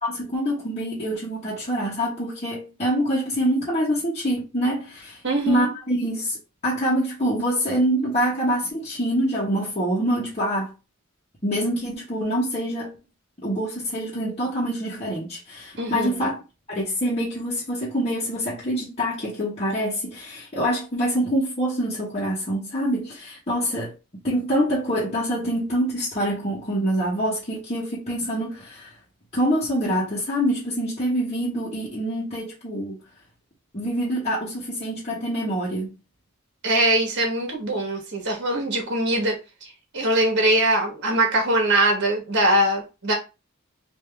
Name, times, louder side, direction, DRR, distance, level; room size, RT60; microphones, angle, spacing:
voice 1, 0.0-5.2 5.5-10.7 11.4-13.0 13.4-16.4 16.7-23.9 24.2-28.9 29.3-33.0 33.7-35.9, equal, 30° left, 1.1 m, -25 dB
voice 2, 5.2-5.7 15.8-16.2 36.6-39.7 39.9-43.1, right 1 dB, 55° right, 1.3 m, -22 dB
3.5 x 2.7 x 3.4 m
head